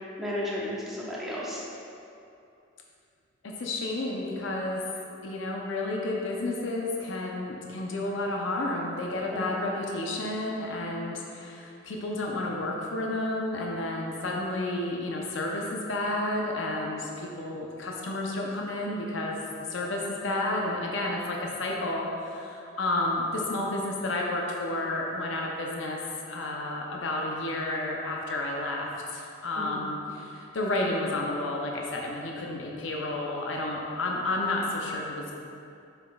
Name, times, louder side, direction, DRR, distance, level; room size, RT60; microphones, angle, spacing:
voice 1, 0.2-1.6 9.3-9.7 29.6-29.9, left 1 dB, ahead, -8 dB, 1.1 m, -34 dB
voice 2, 3.4-4.8 5.2-19.4 19.7-26.0 26.3-35.3, left 2 dB, 65° left, -1 dB, 0.6 m, -31 dB
7.3 x 5.7 x 2.3 m, 2.6 s
head